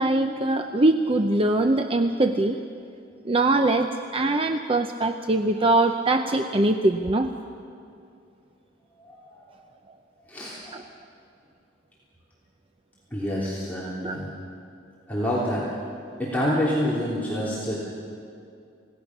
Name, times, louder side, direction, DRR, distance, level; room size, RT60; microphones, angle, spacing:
voice 1, 0.0-2.6 3.2-7.3 10.7-10.8 14.0-14.2, right 2 dB, 30° right, 6 dB, 0.7 m, -22 dB
voice 2, 9.0-9.6 10.3-10.8 13.1-14.3 15.1-15.7 16.2-17.8, equal, 10° left, -8 dB, 3.3 m, -27 dB
30.0 x 17.5 x 6.0 m, 2.5 s
head